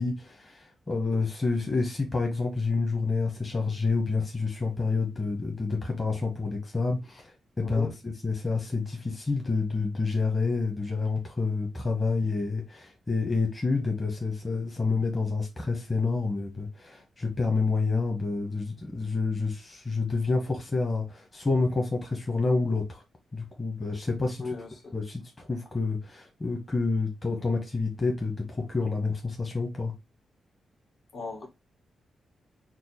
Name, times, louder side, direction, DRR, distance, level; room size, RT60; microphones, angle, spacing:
voice 1, 0.0-23.0 23.3-24.4 24.9-29.9, left 3 dB, 30° left, 1.2 m, -28 dB
voice 2, 7.6-7.9 24.4-24.9 31.1-31.5, left 3 dB, 60° left, 1.6 m, -37 dB
4.5 x 2.1 x 4.2 m
cardioid pair, 85°, 0 cm